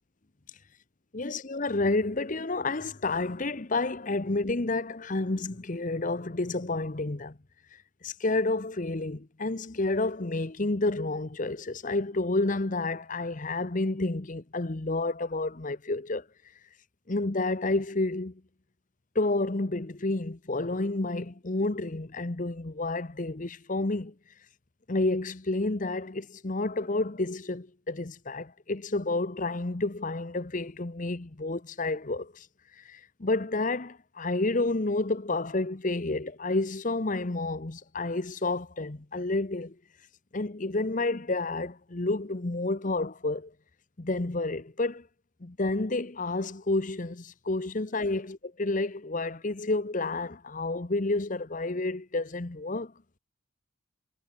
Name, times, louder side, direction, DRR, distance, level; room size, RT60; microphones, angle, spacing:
voice 1, 1.1-7.4 8.0-16.2 17.1-18.4 19.1-24.1 24.9-32.5 32.8-39.7 40.3-43.5 44.0-45.1 45.4-52.9, left 2 dB, 40° left, 0.9 m, -30 dB
head